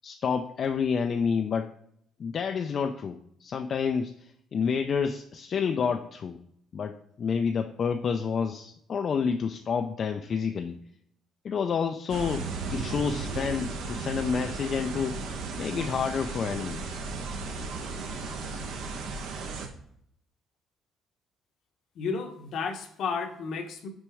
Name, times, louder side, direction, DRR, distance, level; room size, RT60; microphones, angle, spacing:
voice 1, 0.0-1.7 2.2-6.4 6.7-10.8 11.4-17.0, left 6 dB, 40° left, 6 dB, 0.4 m, -29 dB
sound 1, 12.1-19.7, right 4 dB, 80° right, 1.1 m, -35 dB
voice 2, 21.9-23.9, left 5 dB, 60° left, 6 dB, 1.0 m, -32 dB
6.1 x 4.4 x 4.8 m, 0.69 s
cardioid pair, 135°, 0 cm